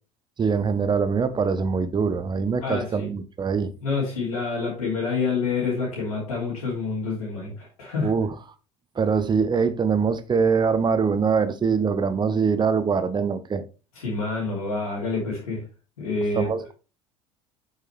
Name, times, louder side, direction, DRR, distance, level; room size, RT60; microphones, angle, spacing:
voice 1, 0.4-3.7 8.0-8.3 9.0-13.6 16.3-16.7, right 5 dB, 25° right, 1.0 m, -23 dB
voice 2, 2.6-3.1 3.8-8.1 13.9-15.6 16.0-16.5, left 4 dB, 75° left, 3.0 m, -27 dB
7.7 x 6.6 x 3.2 m
figure-of-eight pair, 65°, 19 cm